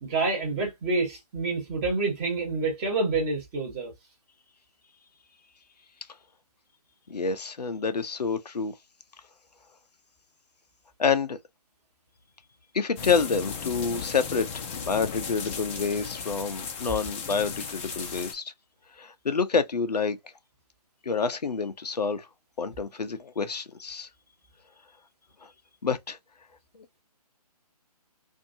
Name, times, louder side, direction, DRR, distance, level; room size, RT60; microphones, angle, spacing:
voice 1, 0.0-3.9, right 3 dB, 20° right, 1.2 m, -28 dB
voice 2, 7.1-8.7 11.0-11.4 12.7-18.5 19.0-20.2 21.0-22.3 22.6-24.1 25.4-25.5 25.8-26.2 26.7-27.0, left 5 dB, 85° left, 0.6 m, -28 dB
sound 1, 13.0-18.3, left 6 dB, 20° left, 0.6 m, -36 dB
2.7 x 2.6 x 2.6 m
figure-of-eight pair, 145°, 20 cm